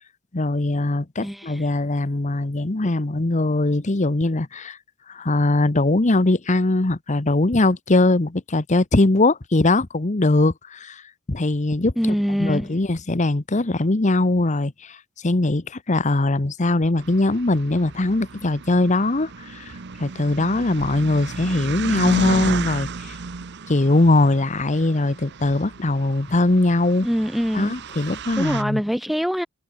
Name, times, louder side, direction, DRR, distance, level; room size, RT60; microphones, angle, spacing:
voice 1, 0.3-4.8 5.1-11.0 11.3-11.9 12.4-15.0 15.2-19.7 20.0-23.2 23.7-27.1 27.5-28.8, left 2 dB, 35° left, 1.0 m, -21 dB
voice 2, 1.2-1.7 12.0-12.8 27.0-27.8 28.4-29.5, equal, ahead, 0.9 m, -24 dB
sound 1, 17.0-28.6, right 4 dB, 55° right, 0.9 m, -33 dB
head